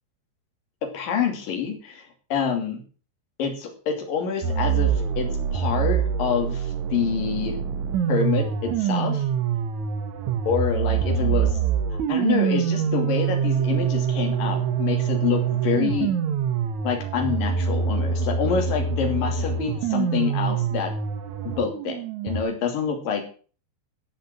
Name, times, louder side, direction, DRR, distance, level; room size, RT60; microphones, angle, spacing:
voice 1, 0.9-2.8 3.4-7.6 8.1-9.2 10.5-11.6 11.9-16.1 16.8-20.9 21.4-22.0 22.2-23.2, left 7 dB, 55° left, 3 dB, 4.2 m, -27 dB
sound 1, 4.4-22.4, right 7 dB, 90° right, 1.6 m, -25 dB
14.0 x 5.9 x 7.6 m, 0.39 s
omnidirectional pair, 5.2 m